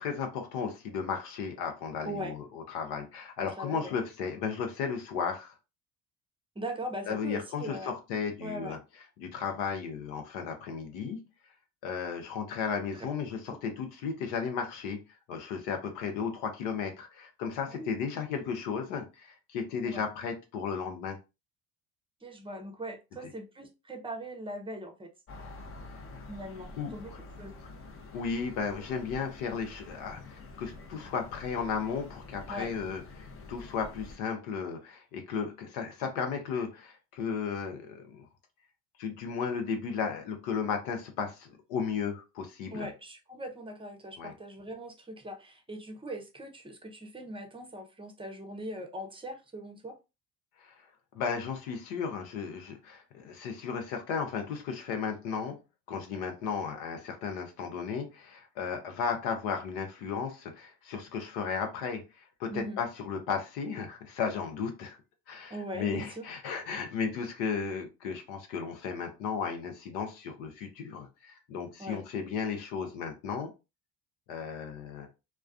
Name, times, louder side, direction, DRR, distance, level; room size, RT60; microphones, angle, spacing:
voice 1, 0.0-5.5 7.1-11.2 11.8-15.0 15.3-21.2 23.2-23.3 26.8-27.2 28.1-38.3 39.0-42.9 44.2-44.3 50.6-50.7 51.1-55.6 55.9-65.0 65.3-73.5 74.3-75.1, left 6 dB, 75° left, 5 dB, 0.8 m, -35 dB
voice 2, 3.4-3.9 6.6-7.9 8.4-8.8 17.7-17.9 19.9-20.0 22.2-25.1 26.3-27.6 32.5-32.7 42.7-49.9 62.5-62.8 65.5-66.2 71.8-72.0, right 1 dB, 10° right, 5 dB, 0.7 m, -40 dB
sound 1, 25.3-34.2, left 3 dB, 30° left, 0.7 m, -47 dB
2.3 x 2.2 x 2.4 m, 0.27 s
hypercardioid pair, 65°, 44 cm